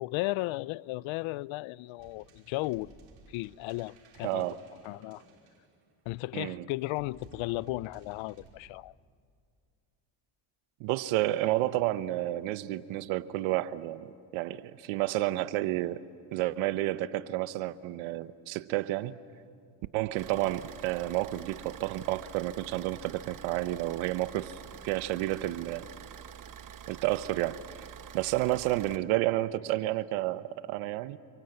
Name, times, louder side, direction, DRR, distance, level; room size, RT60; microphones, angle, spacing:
voice 1, 0.0-3.0 3.3-4.6 4.8-5.2 6.1-8.9, left 20 dB, 80° left, 0.6 m, -35 dB
sound 1, 2.0-6.1 6.9-8.5, right 5 dB, 65° right, 5.2 m, -56 dB
voice 2, 4.2-4.6 6.3-6.6 10.8-16.1 16.3-19.2 19.9-24.5 24.8-25.8 26.9-27.6 28.1-31.2, right 16 dB, 90° right, 1.0 m, -30 dB
Car / Idling, 20.2-29.0, right 9 dB, 45° right, 1.1 m, -47 dB
29.0 x 26.0 x 8.0 m
cardioid pair, 100°, 47 cm